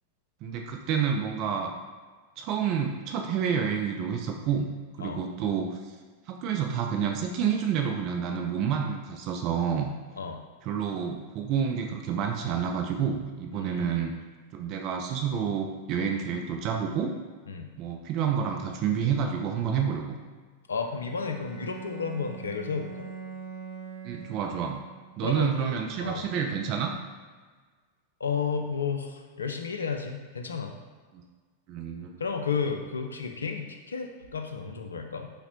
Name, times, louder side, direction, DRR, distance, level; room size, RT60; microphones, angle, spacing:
voice 1, 0.4-1.7 2.4-4.7 5.0-5.9 6.3-9.9 10.6-14.1 14.5-17.1 17.8-20.2 24.0-24.8 25.2-26.9 31.1-31.2 31.7-32.1, right 7 dB, 40° right, 2 dB, 0.3 m, -29 dB
voice 2, 13.5-14.1 17.5-17.7 20.7-23.1 25.2-26.2 28.2-30.7 32.2-35.3, left 5 dB, 70° left, 4 dB, 0.4 m, -32 dB
Bowed string instrument, 20.8-25.3, right 6 dB, 80° right, 1.0 m, -42 dB
4.9 x 2.1 x 2.8 m, 1.4 s
figure-of-eight pair, 90°, 0 cm